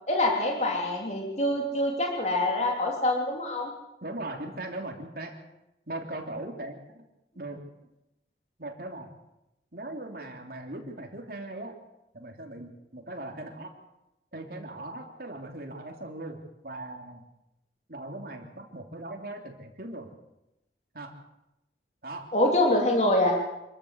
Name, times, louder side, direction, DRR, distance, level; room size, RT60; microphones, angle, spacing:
voice 1, 0.1-3.7 22.3-23.4, left 1 dB, 35° left, 0 dB, 3.1 m, -25 dB
voice 2, 4.0-5.4 5.9-7.0 7.3-7.6 8.6-9.1 9.7-11.7 12.1-13.7 14.3-17.2 17.9-20.1 20.9-21.2 22.0-22.3, right 2 dB, 55° right, 3 dB, 3.2 m, -39 dB
26.5 x 13.5 x 8.1 m, 0.92 s
head